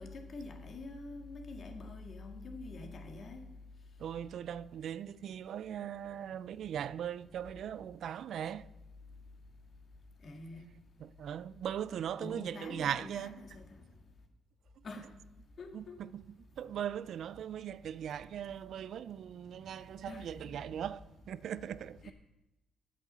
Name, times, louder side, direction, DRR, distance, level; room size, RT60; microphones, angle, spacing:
voice 1, 0.0-3.4 10.2-10.7 12.2-13.8 14.8-15.1 15.6-16.0 19.7-20.3 22.0-22.1, left 3 dB, 50° left, 1.9 m, -46 dB
voice 2, 4.0-8.7 11.0-13.4 15.7-16.2 16.6-22.1, right 9 dB, 70° right, 0.3 m, -39 dB
8.4 x 7.3 x 6.8 m
cardioid pair, 90°, 0 cm